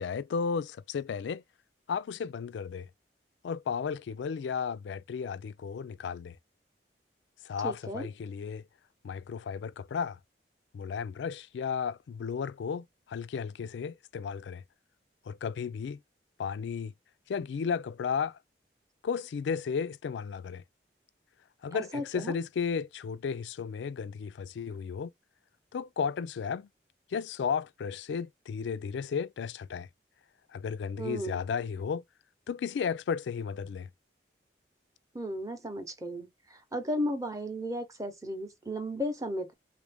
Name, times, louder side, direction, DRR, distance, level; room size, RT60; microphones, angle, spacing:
voice 1, 0.0-1.4 1.9-2.9 3.4-6.4 7.4-8.6 9.0-10.2 10.7-14.6 15.3-16.0 16.4-16.9 17.3-18.4 19.0-20.6 21.6-25.1 25.7-26.7 27.1-29.9 30.5-32.0 32.5-33.9, left 6 dB, 80° left, 0.3 m, -34 dB
voice 2, 7.6-8.1 21.7-22.4 31.0-31.4 35.1-39.5, equal, 20° right, 0.7 m, -35 dB
3.3 x 2.5 x 3.3 m
head